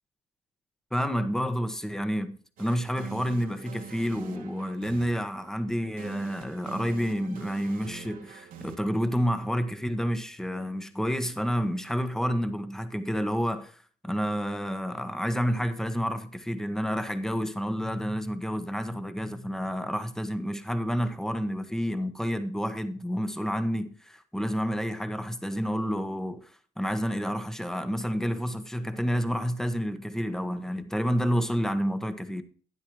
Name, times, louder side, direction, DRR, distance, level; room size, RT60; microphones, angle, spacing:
voice 1, 0.9-32.4, equal, 5° left, 1.2 m, -29 dB
sound 1, 2.6-10.5, right 6 dB, 75° right, 1.6 m, -45 dB
12.0 x 9.6 x 3.1 m
cardioid pair, 80°, 15 cm